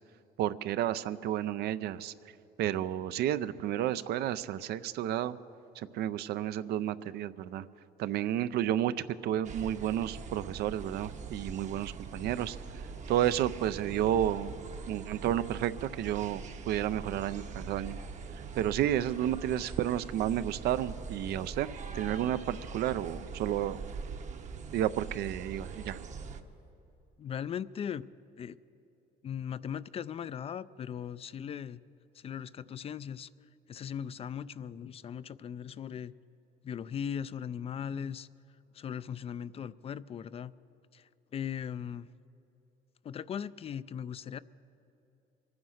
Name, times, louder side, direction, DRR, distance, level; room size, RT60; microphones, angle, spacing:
voice 1, 0.4-2.1 2.6-5.4 5.7-7.7 8.0-14.6 14.8-18.0 18.3-23.8 24.7-26.0, right 11 dB, 75° right, 14 dB, 0.5 m, -31 dB
sound 1, 9.4-26.4, right 5 dB, 45° right, 0.9 m, -43 dB
voice 2, 27.2-28.1 28.4-28.6 29.2-31.8 32.1-33.3 33.7-36.1 36.6-38.3 38.7-40.5 40.9-42.1 43.0-44.4, left 8 dB, 35° left, 17 dB, 0.3 m, -38 dB
24.0 x 9.5 x 6.4 m, 2.8 s
cardioid pair, 110°, 17 cm